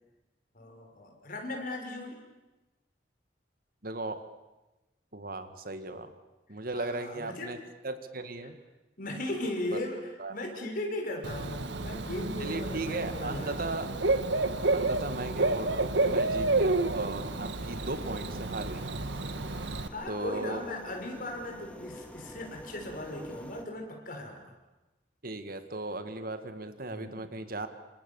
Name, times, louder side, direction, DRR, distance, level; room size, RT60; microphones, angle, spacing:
voice 1, 0.5-2.2 6.7-7.6 9.0-13.7 19.5-24.5 26.9-27.3, left 1 dB, 50° left, 2 dB, 5.9 m, -38 dB
voice 2, 3.8-4.3 5.1-6.1 6.5-7.6 7.8-8.6 9.7-9.8 10.2-10.4 12.4-14.0 14.7-18.9 20.1-20.6 25.2-27.7, right 2 dB, 55° right, 9 dB, 1.9 m, -37 dB
Bird / Cricket, 11.2-19.9, right 2 dB, 85° right, 1.4 m, -30 dB
sound 1, 13.1-23.6, equal, 10° left, 2.1 m, -49 dB
28.0 x 26.5 x 7.1 m, 1.1 s
head